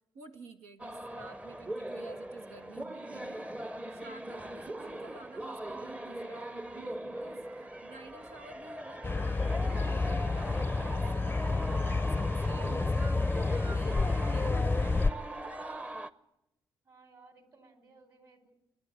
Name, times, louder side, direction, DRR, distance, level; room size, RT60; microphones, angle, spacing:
voice 1, 0.1-3.5 3.9-7.4 7.8-11.8 12.1-15.3, right 4 dB, 75° right, 5 dB, 1.4 m, -51 dB
sound 1, 0.8-16.1, right 1 dB, 10° right, 0.9 m, -41 dB
sound 2, 9.0-15.1, left 3 dB, 20° left, 0.6 m, -29 dB
voice 2, 16.8-18.5, right 3 dB, 45° right, 7 dB, 4.2 m, -59 dB
28.0 x 10.5 x 9.0 m, 0.87 s
hypercardioid pair, 40°, 11 cm